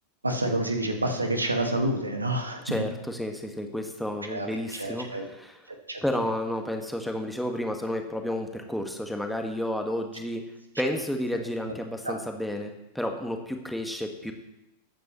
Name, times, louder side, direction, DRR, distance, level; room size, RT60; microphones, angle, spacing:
voice 1, 0.2-2.9 4.3-5.3 5.9-6.0 12.0-12.2, right 1 dB, 80° right, 4 dB, 1.7 m, -28 dB
voice 2, 2.6-5.6 6.0-10.4 10.8-14.3, left 1 dB, ahead, 4 dB, 1.6 m, -31 dB
21.5 x 9.1 x 3.1 m, 0.93 s
figure-of-eight pair, 90°, 0 cm